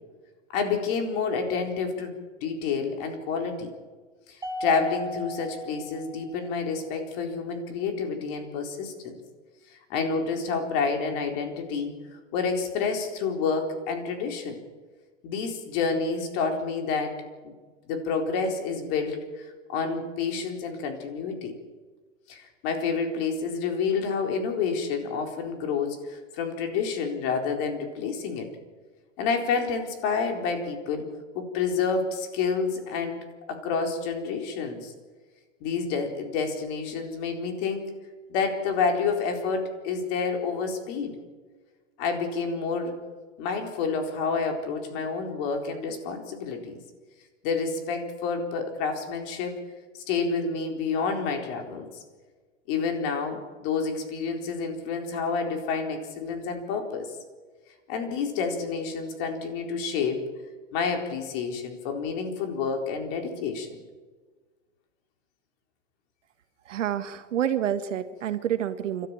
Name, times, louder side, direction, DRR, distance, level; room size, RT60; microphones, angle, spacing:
voice 1, 0.5-3.7 4.3-9.2 9.7-11.9 12.3-14.6 15.2-17.2 17.4-17.5 17.8-21.5 22.3-28.5 29.2-31.1 31.3-34.9 35.6-37.8 38.3-41.1 42.0-43.0 43.4-46.8 47.4-49.5 49.9-51.9 52.7-57.1 57.9-60.2 60.7-63.8, left 5 dB, 50° left, 4 dB, 4.1 m, -29 dB
Mallet percussion, 4.4-6.9, equal, 10° right, 2.1 m, -37 dB
voice 2, 66.7-69.1, right 10 dB, 85° right, 10 dB, 1.8 m, -28 dB
28.5 x 13.0 x 9.0 m, 1.4 s
hypercardioid pair, 135°, 36 cm